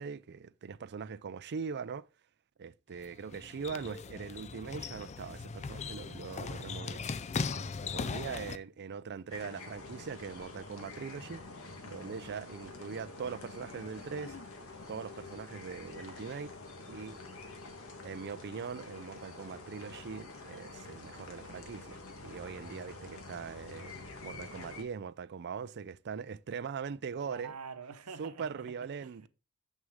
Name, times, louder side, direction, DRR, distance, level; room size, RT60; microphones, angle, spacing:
voice 1, 0.0-2.1 2.6-7.1 7.6-11.4 11.8-14.4 14.9-16.6 16.9-17.2 17.5-17.6 18.0-27.5 28.2-29.3, right 6 dB, 50° right, 0.4 m, -41 dB
sound 1, 2.9-8.6, left 4 dB, 30° left, 0.4 m, -38 dB
sound 2, 9.3-24.8, left 3 dB, 65° left, 1.6 m, -47 dB
voice 2, 27.2-28.6 29.0-29.1, right 5 dB, 90° right, 1.1 m, -46 dB
7.5 x 6.3 x 3.6 m
head